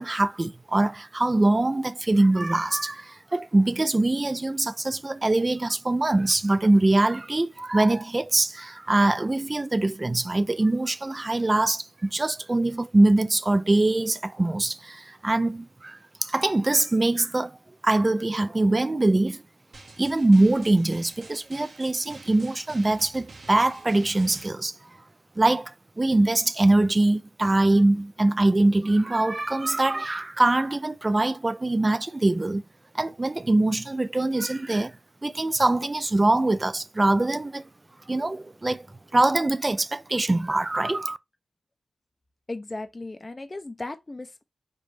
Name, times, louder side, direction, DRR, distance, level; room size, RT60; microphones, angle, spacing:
voice 1, 0.0-17.6 17.8-19.4 20.0-24.7 25.4-32.6 32.9-34.9 35.2-37.7 38.1-38.9 39.1-41.2, right 2 dB, 25° right, 0.4 m, -23 dB
Drum, 19.7-24.5, right 3 dB, 60° right, 1.4 m, -47 dB
voice 2, 42.5-44.4, left 2 dB, 30° left, 0.6 m, -36 dB
5.2 x 2.7 x 3.3 m
wide cardioid pair, 90°, 0 cm